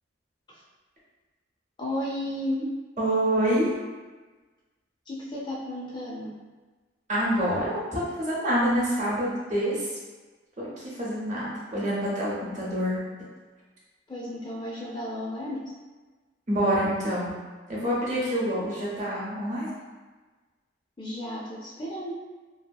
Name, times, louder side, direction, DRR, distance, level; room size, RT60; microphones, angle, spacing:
voice 1, 1.8-2.7 5.1-6.3 14.1-15.6 21.0-22.1, left 1 dB, 25° left, -5 dB, 0.4 m, -33 dB
voice 2, 3.0-3.7 7.1-9.9 10.6-10.7 11.0-13.0 16.5-17.3 17.7-19.7, equal, 40° right, -6 dB, 0.8 m, -26 dB
2.8 x 2.6 x 2.2 m, 1.3 s
head